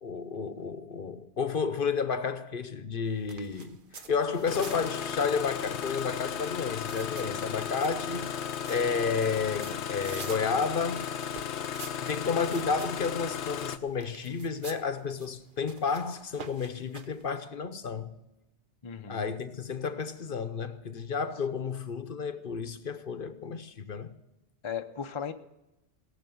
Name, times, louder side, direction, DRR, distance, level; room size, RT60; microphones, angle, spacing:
voice 1, 0.0-3.8 4.1-8.3 8.7-11.1 12.0-18.1 19.1-24.2, left 5 dB, 55° left, 1.0 m, -31 dB
sound 1, 3.0-17.3, right 5 dB, 50° right, 1.0 m, -49 dB
Engine starting, 4.5-13.8, left 8 dB, 80° left, 1.0 m, -35 dB
voice 2, 18.8-19.3 24.6-25.3, left 7 dB, 30° left, 0.6 m, -36 dB
18.0 x 6.8 x 9.3 m
omnidirectional pair, 1.1 m